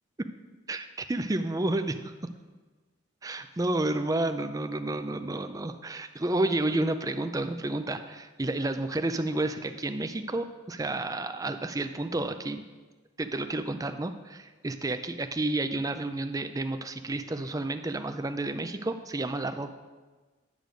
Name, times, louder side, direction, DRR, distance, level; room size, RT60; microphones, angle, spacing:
voice 1, 0.7-2.0 3.2-12.6 13.2-19.7, right 2 dB, 20° right, 8 dB, 0.5 m, -30 dB
10.0 x 6.6 x 5.1 m, 1.3 s
head